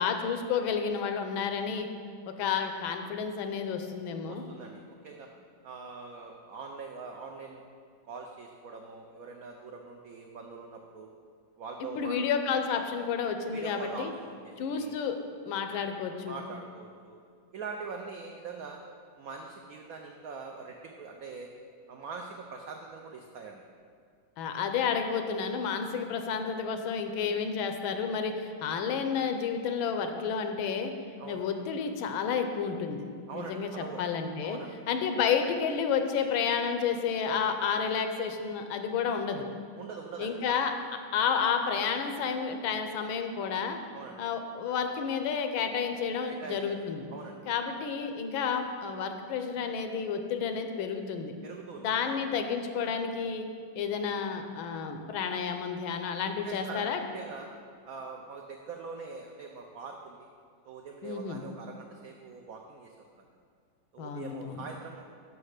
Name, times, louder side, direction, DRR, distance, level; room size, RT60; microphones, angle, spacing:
voice 1, 0.0-1.9 2.3-4.4 12.0-14.1 14.6-15.2 15.5-16.4 24.4-30.9 31.3-33.0 33.3-34.6 34.9-39.5 40.2-40.7 41.1-43.8 44.2-47.1 47.5-51.3 51.8-53.5 53.8-57.0 61.0-61.4 64.0-64.6, left 6 dB, 85° left, 6 dB, 1.5 m, -31 dB
voice 2, 4.2-5.3 5.6-7.6 8.1-11.1 11.6-12.2 13.5-14.9 16.2-17.2 17.5-18.8 19.2-21.5 21.9-23.6 31.2-31.5 33.3-34.0 34.4-34.7 39.7-40.6 43.9-44.2 46.3-46.8 47.1-47.4 51.4-52.1 56.4-57.5 57.9-60.3 60.6-62.9 63.9-65.0, right 4 dB, 85° right, 1 dB, 0.7 m, -43 dB
5.8 x 5.4 x 6.5 m, 2.2 s
omnidirectional pair, 2.2 m